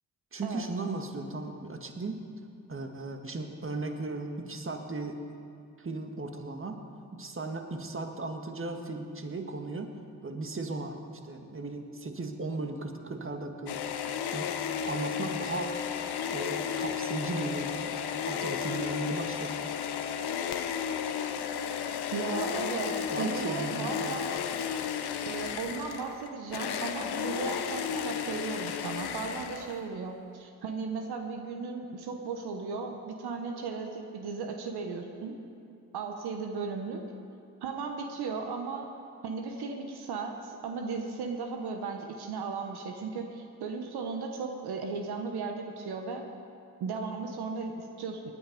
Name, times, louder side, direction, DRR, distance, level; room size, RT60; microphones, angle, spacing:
voice 1, 0.3-2.2 2.7-5.4 5.8-6.8 7.1-9.9 10.2-11.0 11.2-13.8 14.3-14.5 14.9-15.7 16.3-17.9 18.2-19.5 23.1-24.2, right 3 dB, 35° right, 4 dB, 1.8 m, -36 dB
sound 1, 13.7-29.9, left 8 dB, 80° left, 0.9 m, -33 dB
voice 2, 22.1-24.3 25.3-35.3 35.9-37.0 37.6-38.9 39.2-46.2 46.8-48.3, right 4 dB, 75° right, 3 dB, 1.2 m, -36 dB
19.5 x 9.6 x 5.3 m, 2.5 s
supercardioid pair, 45°, 38 cm